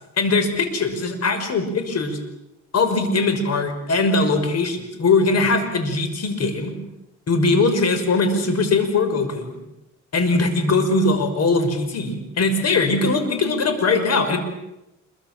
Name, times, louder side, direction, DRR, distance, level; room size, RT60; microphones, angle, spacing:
voice 1, 0.2-2.2 2.7-6.7 7.3-9.6 10.1-14.4, left 3 dB, 55° left, 8 dB, 5.8 m, -20 dB
26.5 x 24.0 x 7.6 m, 0.89 s
cardioid pair, 90°, 30 cm